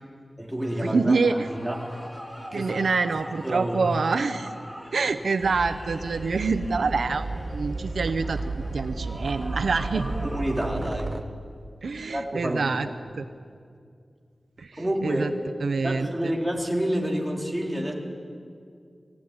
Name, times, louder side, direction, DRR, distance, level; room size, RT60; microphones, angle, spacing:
voice 1, 0.4-1.9 2.5-2.9 3.4-4.0 9.9-11.1 12.1-12.9 14.8-15.4 15.8-17.9, equal, 10° right, -1 dB, 4.1 m, -29 dB
sound 1, 0.6-10.7, equal, 5° left, 3.1 m, -42 dB
voice 2, 0.9-1.5 2.5-4.6 4.9-10.1 11.8-12.9 13.2-13.3 14.6-15.3 15.6-16.3, right 4 dB, 80° right, 10 dB, 0.8 m, -26 dB
sound 2, 5.4-11.2, right 2 dB, 35° right, 1.3 m, -33 dB
21.5 x 17.0 x 9.8 m, 2.2 s
wide cardioid pair, 75°, 0 cm